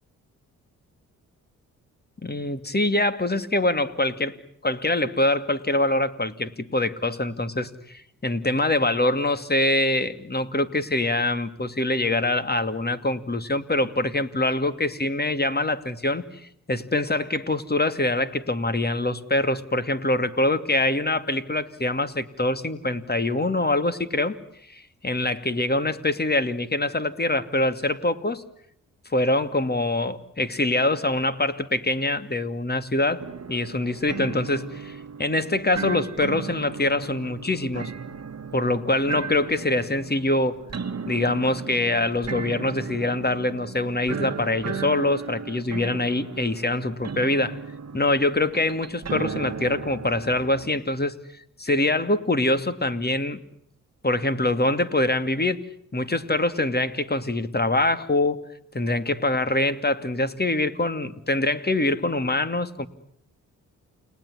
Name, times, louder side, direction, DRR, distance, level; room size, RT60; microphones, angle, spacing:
voice 1, 2.2-4.4 4.6-16.2 16.7-24.4 24.7-28.4 29.1-33.2 33.5-37.9 38.5-40.6 41.1-47.6 47.9-51.2 51.6-53.4 54.0-55.6 55.9-58.4 58.7-62.9, left 2 dB, 25° left, 11 dB, 2.6 m, -24 dB
sound 1, 33.2-50.7, right 5 dB, 45° right, 1.6 m, -36 dB
30.0 x 20.0 x 9.8 m, 0.68 s
hypercardioid pair, 40°, 37 cm